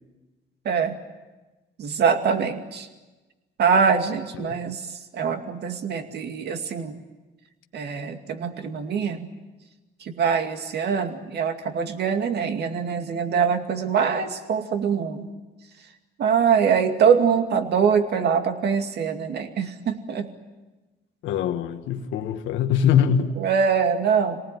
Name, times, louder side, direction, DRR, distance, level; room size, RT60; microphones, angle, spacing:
voice 1, 1.8-2.9 3.6-6.9 7.7-9.3 10.0-15.3 16.2-20.3 23.2-24.4, right 6 dB, 60° right, 2.4 m, -23 dB
voice 2, 21.2-23.4, left 8 dB, 85° left, 1.5 m, -23 dB
27.5 x 19.0 x 9.3 m
cardioid pair, 105°, 19 cm